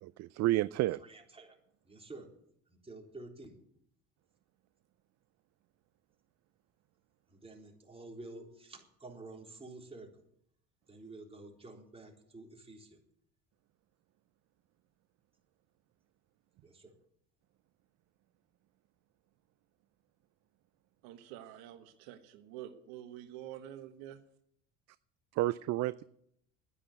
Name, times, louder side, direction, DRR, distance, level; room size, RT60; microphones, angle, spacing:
voice 1, 0.0-1.0 25.3-26.0, right 16 dB, 45° right, 17 dB, 0.4 m, -30 dB
voice 2, 1.1-1.6 1.9-2.3 2.8-3.6 7.3-10.1 10.9-13.0 16.6-16.9, right 2 dB, 15° right, 0 dB, 3.7 m, -50 dB
voice 3, 21.0-24.2, right 12 dB, 70° right, 8 dB, 1.3 m, -47 dB
10.0 x 9.9 x 9.2 m, 0.73 s
hypercardioid pair, 75°, 38 cm